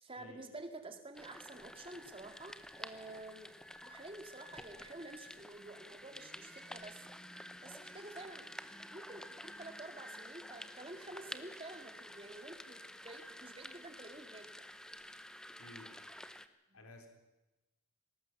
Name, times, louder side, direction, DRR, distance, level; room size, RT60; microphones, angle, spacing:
voice 1, 0.0-3.6 3.8-7.1 7.6-8.5 8.9-14.7, right 2 dB, 25° right, 6 dB, 2.2 m, -50 dB
sound 1, 1.1-16.5, left 1 dB, 5° left, 0.7 m, -50 dB
voice 2, 15.6-15.9 16.7-17.1, left 1 dB, 85° left, 4 dB, 3.4 m, -54 dB
20.0 x 18.0 x 7.1 m, 1.0 s
head